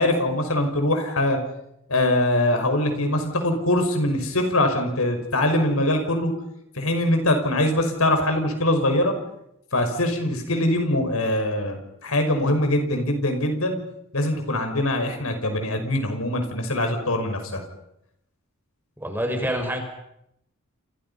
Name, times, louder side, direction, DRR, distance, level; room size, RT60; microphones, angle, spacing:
voice 1, 0.0-1.4 1.9-6.3 6.7-9.1 9.7-13.8 14.1-17.6, left 1 dB, 80° left, 5 dB, 5.8 m, -23 dB
voice 2, 19.0-19.8, equal, 10° right, 3 dB, 5.7 m, -26 dB
30.0 x 28.0 x 5.7 m, 0.79 s
head